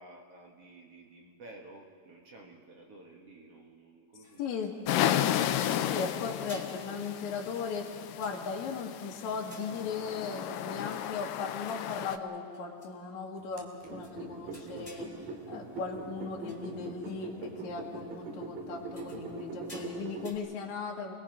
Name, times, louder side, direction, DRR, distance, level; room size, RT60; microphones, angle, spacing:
voice 1, 0.0-4.4, right 2 dB, 50° right, 0 dB, 2.1 m, -52 dB
sound 1, 4.2-5.1 5.6-6.0 6.4-8.8 9.4-10.6 10.9-12.0 12.5-13.1 13.7-13.8 14.0-14.2 14.5-16.0 16.5-16.8 17.1-17.2 18.8-20.4, left 1 dB, 10° left, 3.1 m, -55 dB
voice 2, 4.4-4.8 5.9-7.9 8.2-15.1 15.5-21.1, left 5 dB, 55° left, -1 dB, 3.1 m, -37 dB
sound 2, 4.9-12.2, left 11 dB, 75° left, 2.3 m, -33 dB
sound 3, 13.6-20.3, right 4 dB, 70° right, 3.8 m, -42 dB
29.0 x 21.0 x 5.3 m, 2.1 s
omnidirectional pair, 4.1 m